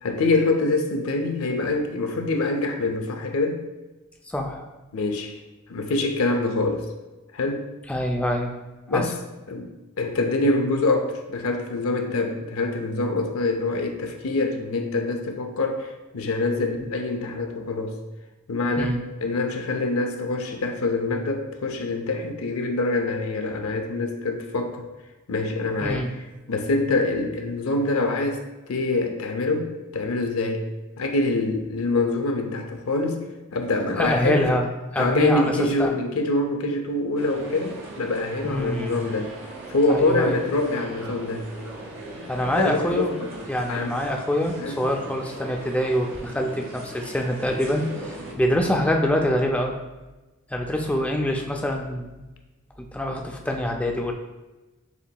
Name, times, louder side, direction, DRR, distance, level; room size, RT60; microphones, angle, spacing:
voice 1, 0.0-3.6 4.9-5.4 5.7-6.9 7.3-7.7 8.9-9.1 9.5-9.7 10.0-18.0 18.5-19.0 19.2-24.8 25.3-26.1 26.5-28.4 28.7-30.7 31.0-33.2 33.5-34.5 35.0-39.3 39.7-41.5 42.6-43.3 43.7-44.0 44.6-44.8, left 2 dB, 85° left, 4 dB, 0.5 m, -25 dB
voice 2, 4.3-4.6 7.9-8.5 8.9-9.0 16.8-16.9 18.8-19.0 25.8-26.1 34.0-34.7 34.9-35.9 38.4-39.0 39.9-40.4 42.3-43.2 43.5-49.7 50.5-52.2 52.9-54.1, equal, 5° left, 2 dB, 0.3 m, -25 dB
sound 1, 37.2-48.3, right 1 dB, 65° right, 0.8 m, -39 dB
6.8 x 2.7 x 2.2 m, 1.1 s
head